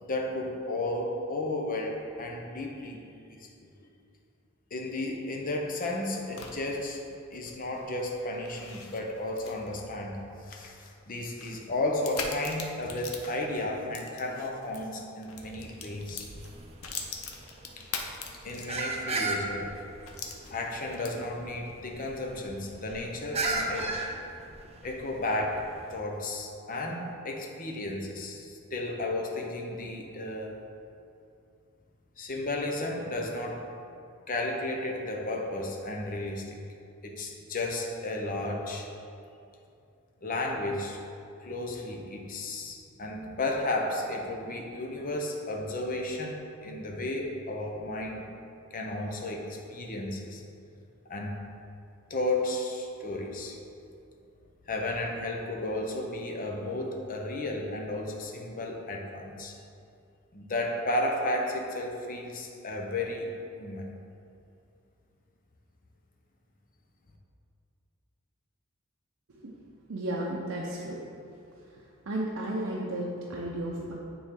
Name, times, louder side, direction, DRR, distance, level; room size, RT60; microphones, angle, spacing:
voice 1, 0.0-3.0 3.3-3.5 4.7-7.0 7.3-16.3 17.8-17.9 18.4-19.8 20.5-23.9 24.8-25.6 25.9-30.5 32.2-33.6 34.3-36.6 37.0-38.9 40.2-41.0 41.4-48.2 48.7-50.4 51.1-51.4 52.1-53.6 54.7-59.6 60.3-63.3 63.6-63.9, left 2 dB, 40° left, 1 dB, 0.8 m, -33 dB
sound 1, 5.6-14.8 15.2-19.1 19.4-19.5 20.1-21.4, left 5 dB, 85° left, 0.7 m, -42 dB
sound 2, 15.3-26.0, right 3 dB, 30° right, 0.5 m, -37 dB
voice 2, 69.9-71.1 72.1-73.9, right 1 dB, 70° right, -4 dB, 0.6 m, -33 dB
9.1 x 3.6 x 3.7 m, 2.6 s
head